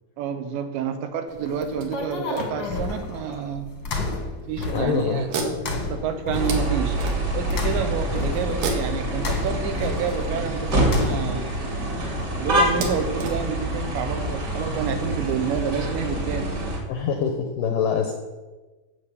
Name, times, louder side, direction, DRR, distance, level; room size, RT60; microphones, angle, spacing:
voice 1, 0.2-3.7 4.5-5.3 5.7-7.0 7.3-11.5 12.4-16.5, right 6 dB, 80° right, 7 dB, 3.4 m, -29 dB
sound 1, 1.3-11.5, left 3 dB, 50° left, 1.3 m, -32 dB
sound 2, 1.8-3.1 3.9-4.0 4.3-4.6 5.3-7.6 8.5-10.2 11.3-11.4 11.8-11.9 12.7-14.3, right 3 dB, 65° right, 3.2 m, -33 dB
voice 2, 4.7-5.6 16.9-18.1, left 6 dB, 80° left, 4 dB, 2.0 m, -25 dB
sound 3, 6.3-16.8, right 1 dB, 30° right, 2.4 m, -26 dB
13.0 x 6.1 x 8.4 m, 1.2 s
omnidirectional pair, 5.2 m